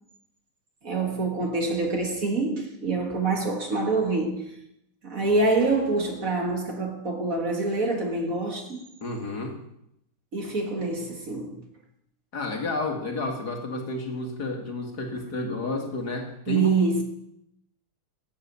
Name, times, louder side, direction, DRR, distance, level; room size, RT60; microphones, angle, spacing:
voice 1, 0.8-4.4 5.0-8.8 10.3-11.6 16.5-17.0, right 3 dB, 45° right, 2.0 m, -26 dB
voice 2, 9.0-9.6 12.3-16.7, left 2 dB, 50° left, 2.4 m, -31 dB
13.0 x 7.7 x 8.3 m
omnidirectional pair, 2.2 m